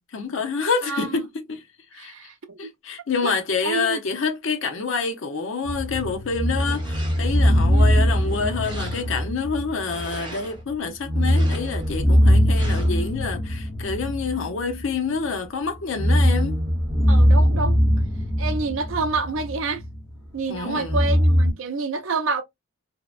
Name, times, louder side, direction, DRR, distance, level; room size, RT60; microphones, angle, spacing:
voice 1, 0.1-1.6 1.9-2.1 2.6-16.6 20.5-21.1, left 5 dB, 65° left, 0.6 m, -27 dB
voice 2, 0.8-1.2 2.0-2.7 3.2-3.3 3.6-4.0 7.7-8.1 17.1-17.8 18.4-19.8 20.3-22.4, right 4 dB, 65° right, 0.5 m, -28 dB
sound 1, 5.6-10.3 10.6-10.7 11.0-15.3 15.8-20.1 20.8-21.5, equal, 15° left, 0.9 m, -21 dB
sound 2, 6.6-7.5 8.0-9.3 9.7-10.6 11.2-12.0 12.5-13.1, right 2 dB, 25° right, 1.0 m, -41 dB
2.7 x 2.1 x 2.3 m
head